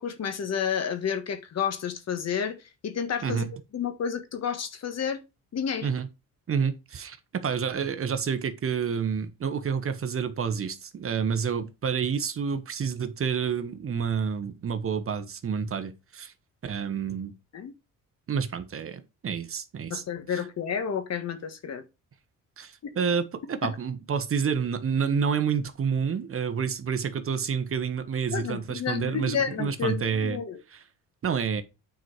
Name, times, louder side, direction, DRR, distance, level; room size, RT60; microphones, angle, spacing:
voice 1, 0.0-3.5 3.7-5.2 5.5-5.9 17.5-17.7 19.9-21.8 22.8-23.0 23.6-23.7 28.3-30.6, left 7 dB, 50° left, 1.5 m, -30 dB
voice 2, 3.2-3.5 5.8-6.1 6.5-16.3 16.6-17.3 18.3-20.0 20.3-20.4 22.6-30.4 30.7-30.8 31.2-31.6, right 6 dB, 40° right, 1.2 m, -29 dB
9.1 x 4.7 x 4.5 m
cardioid pair, 110°, 33 cm